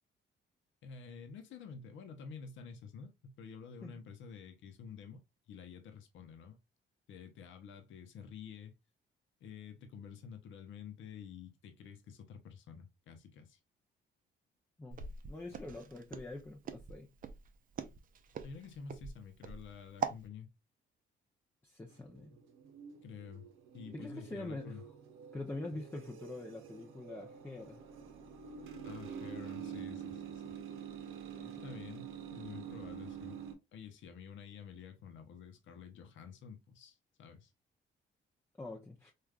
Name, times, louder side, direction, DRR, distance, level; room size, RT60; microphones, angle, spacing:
voice 1, 0.8-6.6 7.1-8.7 9.4-13.6 15.5-15.7 18.4-20.5 23.0-23.5 23.7-24.8 25.7-25.8 28.8-30.5 31.6-33.4 33.7-37.5, left 6 dB, 75° left, 0.7 m, -50 dB
voice 2, 14.8-17.1 21.6-22.4 23.9-24.8 25.3-27.8 31.4-31.8 38.6-39.1, left 2 dB, 10° left, 0.5 m, -45 dB
Walk footsteps, 14.9-20.2, right 6 dB, 45° right, 0.5 m, -42 dB
sound 1, 21.9-33.5, right 7 dB, 85° right, 0.7 m, -47 dB
3.3 x 2.3 x 2.3 m
cardioid pair, 90°, 20 cm